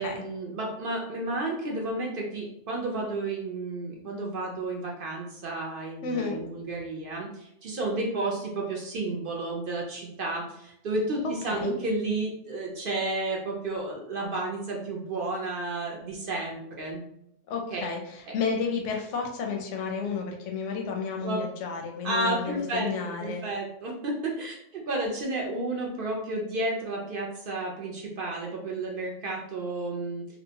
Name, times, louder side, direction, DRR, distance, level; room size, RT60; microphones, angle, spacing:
voice 1, 0.0-17.0 17.7-17.9 18.3-18.4 21.2-21.4 22.0-22.9 23.2-30.4, right 2 dB, 60° right, -2 dB, 0.6 m, -32 dB
voice 2, 6.0-6.4 11.5-11.8 17.5-23.4, left 5 dB, 80° left, 1 dB, 0.9 m, -31 dB
2.8 x 2.1 x 2.7 m, 0.76 s
omnidirectional pair, 1.2 m